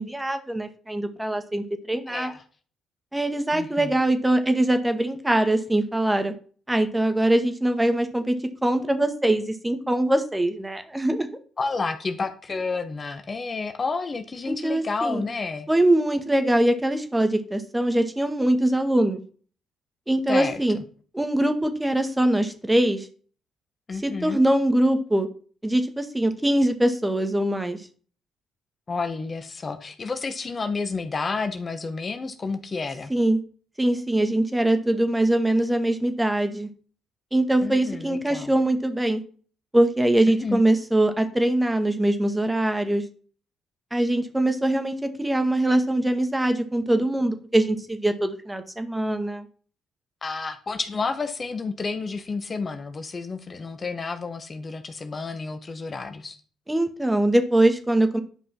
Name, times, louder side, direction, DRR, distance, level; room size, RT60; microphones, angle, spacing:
voice 1, 0.0-2.3 3.1-6.3 6.7-8.4 8.6-11.3 14.5-15.2 15.7-19.2 20.1-20.8 21.1-23.1 24.0-25.3 25.6-27.8 33.1-33.4 33.8-36.7 37.3-39.2 39.7-43.0 43.9-49.5 56.7-58.2, right 1 dB, 10° right, 7 dB, 2.1 m, -22 dB
voice 2, 2.1-2.4 3.5-3.9 11.6-15.7 20.3-20.6 23.9-24.4 28.9-33.1 37.6-38.5 40.3-40.6 50.2-56.4, left 4 dB, 40° left, 8 dB, 1.5 m, -30 dB
11.0 x 5.3 x 5.8 m, 0.42 s
supercardioid pair, 55°, 0 cm